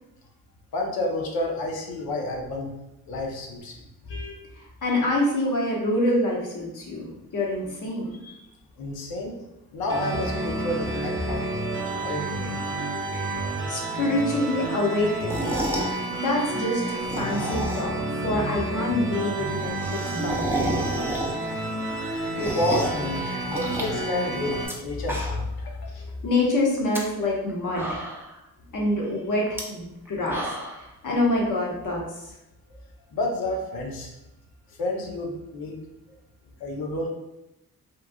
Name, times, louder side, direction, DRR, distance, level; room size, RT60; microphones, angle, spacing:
voice 1, 0.7-2.7 3.1-3.7 4.1-4.5 4.9-5.0 8.2-8.4 8.8-9.4 9.7-11.4 12.0-12.5 22.3-26.1 33.1-34.1 34.8-35.8 36.6-37.1, left 1 dB, 85° left, 0 dB, 0.7 m, -30 dB
voice 2, 4.6-7.1 7.3-8.1 13.3-15.6 16.1-17.9 18.2-21.1 25.9-28.0 28.7-30.4 31.0-32.0, left 1 dB, 60° left, -3 dB, 1.0 m, -26 dB
sound 1, 9.9-24.7, right 2 dB, 35° right, 0.8 m, -30 dB
sound 2, 15.2-15.9 16.9-18.0 18.4-18.5 18.7-18.8 19.0-19.1 19.4-21.6 21.9-23.0 23.5-24.7 25.0-25.6 25.9-26.0 26.7-27.0 27.5-27.6 27.8-28.4 29.4-29.6 30.0-30.8, right 1 dB, 5° right, 0.5 m, -31 dB
3.1 x 2.4 x 2.2 m, 0.91 s
cardioid pair, 65°, 35 cm